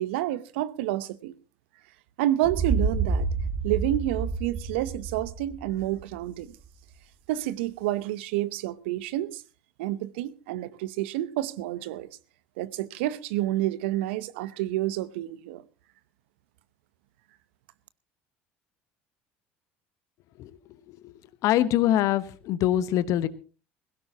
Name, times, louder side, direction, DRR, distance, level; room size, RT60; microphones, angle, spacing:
voice 1, 0.0-1.3 2.2-3.3 3.6-6.6 7.3-9.4 9.8-12.1 12.6-15.6, right 14 dB, 70° right, 0.8 m, -29 dB
sound 1, 2.4-6.3, right 4 dB, 40° right, 1.6 m, -29 dB
voice 2, 21.4-23.3, left 12 dB, 60° left, 1.1 m, -23 dB
21.0 x 16.5 x 2.9 m
hypercardioid pair, 65°, 6 cm